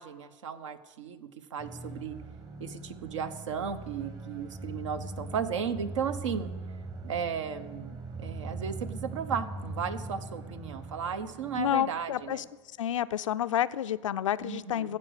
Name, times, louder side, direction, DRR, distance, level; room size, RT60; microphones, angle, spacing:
voice 1, 0.0-2.1 2.6-6.5 7.0-12.4 14.4-14.9, right 7 dB, 80° right, 12 dB, 0.8 m, -35 dB
sound 1, 1.6-12.3, right 2 dB, 25° right, 1.0 m, -41 dB
voice 2, 11.6-12.4 12.8-15.0, left 11 dB, 85° left, 15 dB, 0.4 m, -29 dB
15.0 x 5.2 x 6.4 m, 1.3 s
hypercardioid pair, 95°, 16 cm